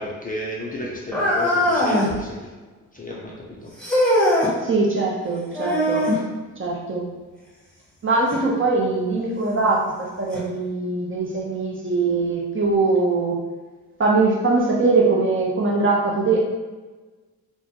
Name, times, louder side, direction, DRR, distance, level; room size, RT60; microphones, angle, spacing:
voice 1, 0.0-2.4 2.9-3.7, left 1 dB, 20° left, -4 dB, 0.5 m, -32 dB
sound 1, 1.1-2.2 3.8-4.5 5.5-6.2 8.3-8.4 9.3-9.4 10.3-10.4, left 1 dB, ahead, 0.9 m, -20 dB
voice 2, 4.6-6.1 6.6-7.1 8.0-13.4 14.0-16.5, right 3 dB, 30° right, -3 dB, 0.6 m, -21 dB
2.2 x 2.1 x 2.8 m, 1.3 s
hypercardioid pair, 45°, 43 cm